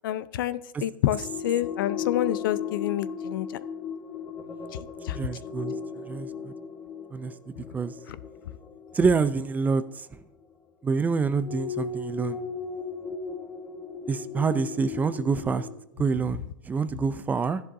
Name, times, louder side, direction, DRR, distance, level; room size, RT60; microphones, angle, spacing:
voice 1, 0.0-3.5 5.1-5.2, left 12 dB, 70° left, 16 dB, 0.6 m, -28 dB
sound 1, 1.1-10.4 11.3-15.8, left 6 dB, 20° left, 1.1 m, -36 dB
voice 2, 5.1-5.7 6.1-6.5 7.1-7.3 7.7-7.9 8.9-9.8 10.8-12.4 14.1-15.7 16.0-17.6, right 5 dB, 15° right, 14 dB, 0.4 m, -26 dB
13.0 x 11.0 x 2.7 m, 0.84 s
hypercardioid pair, 130°, 12 cm